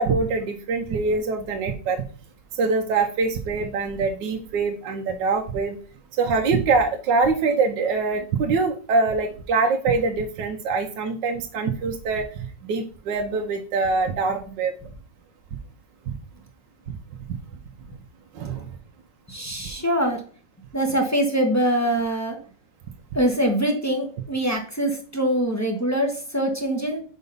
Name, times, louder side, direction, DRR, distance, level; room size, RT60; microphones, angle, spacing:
voice 1, 0.0-2.0 2.5-5.8 6.2-14.7 16.1-16.2 18.3-18.7, right 4 dB, 80° right, 4 dB, 1.4 m, -24 dB
voice 2, 19.3-20.2 20.7-22.4 23.1-27.0, right 1 dB, 10° left, 1 dB, 0.9 m, -23 dB
5.3 x 4.9 x 5.4 m, 0.42 s
omnidirectional pair, 1.9 m